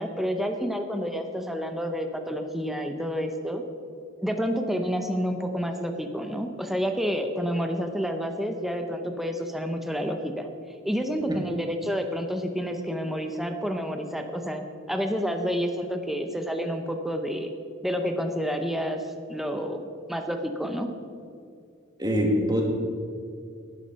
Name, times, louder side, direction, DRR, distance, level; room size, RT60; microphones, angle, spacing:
voice 1, 0.0-3.6 4.2-10.5 10.8-17.5 17.8-20.9, equal, ahead, 5 dB, 0.7 m, -29 dB
voice 2, 22.0-22.6, equal, 20° right, 1 dB, 1.8 m, -23 dB
11.0 x 10.5 x 5.6 m, 2.4 s
head